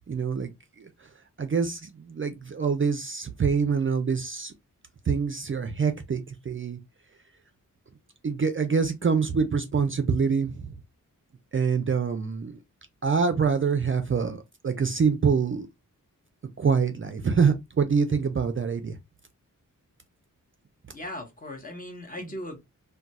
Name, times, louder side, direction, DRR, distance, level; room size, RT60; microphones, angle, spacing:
voice 1, 0.1-0.5 1.4-4.5 5.1-6.8 8.2-10.7 11.5-12.6 13.0-15.7 16.6-18.9, right 5 dB, 40° right, 0.4 m, -25 dB
voice 2, 20.9-22.6, left 1 dB, 25° left, 0.9 m, -38 dB
2.3 x 2.2 x 3.9 m
wide cardioid pair, 115°, 33 cm